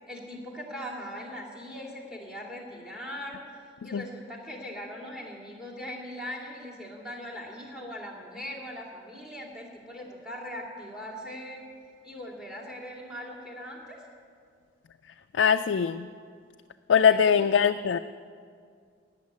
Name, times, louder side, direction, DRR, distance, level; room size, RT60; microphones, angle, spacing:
voice 1, 0.1-3.4 3.8-11.6 12.0-14.0 17.1-17.5, equal, 5° right, -1 dB, 2.6 m, -40 dB
voice 2, 15.3-16.1 16.9-18.0, left 7 dB, 70° left, 7 dB, 0.4 m, -22 dB
17.5 x 6.5 x 9.6 m, 2.2 s
head